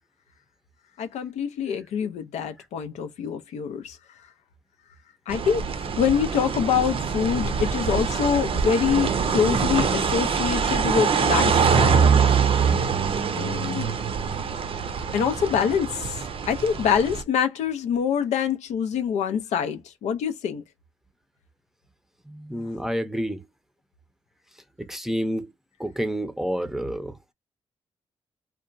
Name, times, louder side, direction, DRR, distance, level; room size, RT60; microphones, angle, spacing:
voice 1, 1.0-4.0 5.3-5.6 6.0-12.0 13.4-13.9 15.1-16.2 16.5-20.6, left 7 dB, 90° left, 0.4 m, -25 dB
sound 1, 5.3-17.2, right 6 dB, 55° right, 0.5 m, -24 dB
voice 2, 22.3-23.5 24.8-25.5 25.8-27.3, equal, 5° right, 0.6 m, -29 dB
2.8 x 2.2 x 2.5 m
cardioid pair, 60°, 11 cm